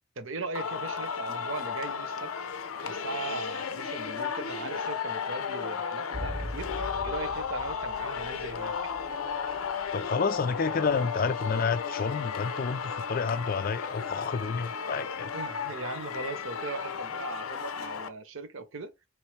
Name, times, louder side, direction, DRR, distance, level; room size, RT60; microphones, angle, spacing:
voice 1, 0.2-2.3 2.8-6.7 7.0-8.7 15.3-18.9, right 3 dB, 70° right, 0.8 m, -39 dB
Singing, 0.6-18.1, left 6 dB, 90° left, 0.6 m, -34 dB
sound 1, 6.1-10.4 10.6-10.7, equal, 25° right, 0.5 m, -41 dB
voice 2, 9.9-15.3, left 5 dB, 40° left, 0.4 m, -30 dB
4.2 x 3.2 x 3.2 m
head